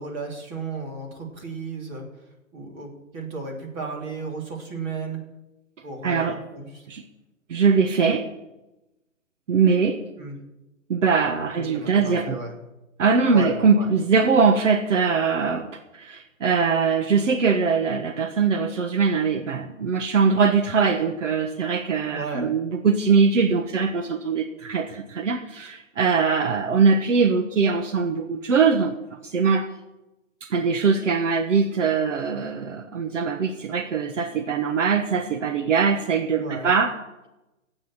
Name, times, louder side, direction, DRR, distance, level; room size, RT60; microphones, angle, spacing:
voice 1, 0.0-2.1 2.5-5.2 5.8-6.9 10.2-10.4 11.6-12.5 13.3-13.9 22.1-22.5 36.3-36.7, right 3 dB, 25° right, 0 dB, 3.1 m, -34 dB
voice 2, 6.0-6.4 6.9-7.0 7.5-8.3 9.5-10.0 10.9-12.4 13.0-28.9 29.2-29.7 30.4-37.0, right 5 dB, 65° right, 6 dB, 1.4 m, -22 dB
13.0 x 8.9 x 8.9 m, 0.97 s
hypercardioid pair, 150°, 40 cm